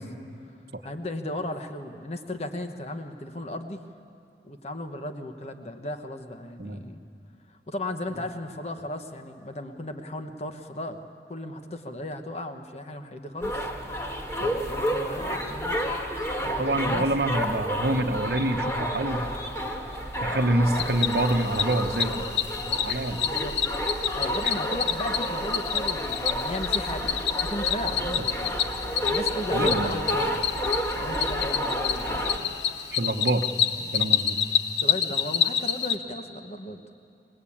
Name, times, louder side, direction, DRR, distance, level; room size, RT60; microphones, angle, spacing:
voice 1, 0.8-3.8 4.4-7.0 7.5-11.0 11.3-13.7 14.4-15.8 16.4-17.1 23.2-23.6 24.1-27.1 27.4-28.5 28.8-30.4 31.0-32.5 33.8-34.0 34.8-36.8, left 1 dB, 35° left, 6 dB, 1.2 m, -36 dB
sound 1, 13.4-32.4, equal, 15° left, 1.5 m, -30 dB
voice 2, 16.5-19.2 20.2-22.3 22.8-23.2 29.5-30.0 32.9-33.5 33.9-34.4, right 1 dB, 60° right, 5 dB, 1.1 m, -26 dB
Cricket, 20.7-35.9, left 8 dB, 80° left, 1.0 m, -28 dB
22.5 x 20.0 x 8.6 m, 2.5 s
head